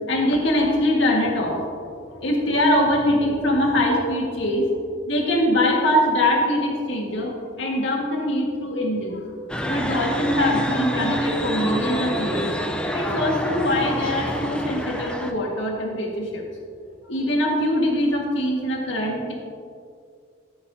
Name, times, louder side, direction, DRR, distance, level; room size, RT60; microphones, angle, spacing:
voice 1, 0.1-1.6 2.2-4.7 5.1-9.2 9.7-12.5 12.9-16.4 17.0-19.3, left 1 dB, 70° left, -1 dB, 1.8 m, -22 dB
sound 1, 9.5-15.3, equal, 5° left, 0.5 m, -27 dB
13.5 x 7.9 x 2.8 m, 2.3 s
head